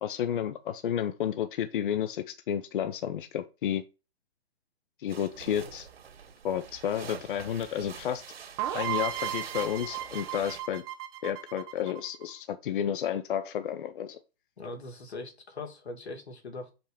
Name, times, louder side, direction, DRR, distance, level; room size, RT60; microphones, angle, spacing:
voice 1, 0.0-3.8 5.0-5.9 6.4-8.2 8.7-10.8 11.2-14.2, left 9 dB, 55° left, 0.8 m, -31 dB
sound 1, 5.1-10.6, right 7 dB, 70° right, 2.0 m, -45 dB
sound 2, 8.6-12.3, right 12 dB, 10° right, 0.4 m, -35 dB
voice 2, 14.6-16.7, left 2 dB, 90° left, 2.8 m, -41 dB
5.7 x 5.4 x 5.2 m
hypercardioid pair, 145°, 32 cm